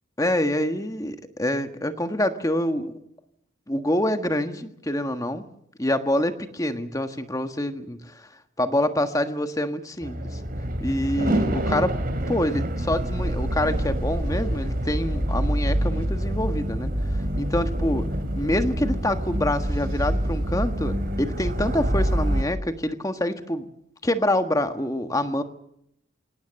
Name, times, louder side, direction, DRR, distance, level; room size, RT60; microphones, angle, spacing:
voice 1, 0.2-3.0 3.7-5.4 5.8-8.3 8.6-10.4 10.8-12.0 12.3-18.1 18.3-23.7 24.0-25.4, left 1 dB, 15° left, 8 dB, 1.5 m, -26 dB
sound 1, 10.0-22.4, right 1 dB, 45° right, 3.0 m, -26 dB
24.5 x 18.0 x 7.6 m, 0.75 s
head